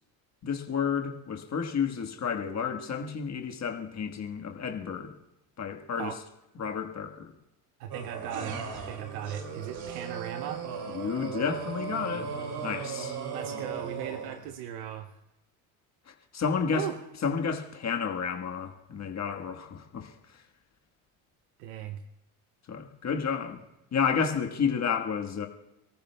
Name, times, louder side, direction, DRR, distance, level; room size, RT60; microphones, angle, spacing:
voice 1, 0.4-5.1 5.6-6.1 6.6-7.3 10.9-12.3 12.6-13.2 16.1-16.9 17.2-20.1 22.7-23.6 23.9-25.5, left 6 dB, 40° left, 4 dB, 1.5 m, -31 dB
voice 2, 7.8-10.6 13.3-15.2 16.7-17.0 21.6-22.0, right 9 dB, 90° right, 9 dB, 0.8 m, -37 dB
sound 1, 7.9-14.5, right 6 dB, 60° right, 2.5 m, -37 dB
30.0 x 14.0 x 2.3 m, 0.91 s
supercardioid pair, 85°, 43 cm